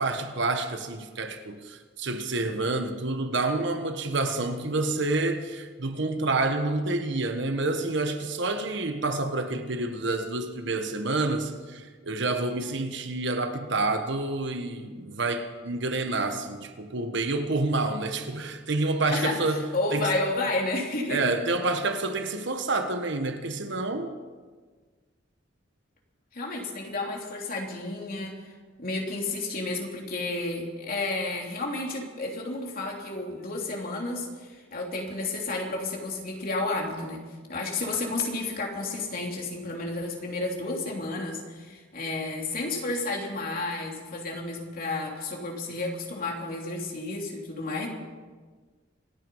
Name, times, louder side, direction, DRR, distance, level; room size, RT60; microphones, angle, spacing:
voice 1, 0.0-19.6 19.9-20.1 21.1-24.1, right 2 dB, 65° right, 1.4 m, -28 dB
voice 2, 19.1-21.2 26.3-37.2 37.5-47.9, left 2 dB, 50° left, 3.1 m, -31 dB
26.5 x 9.4 x 5.6 m
head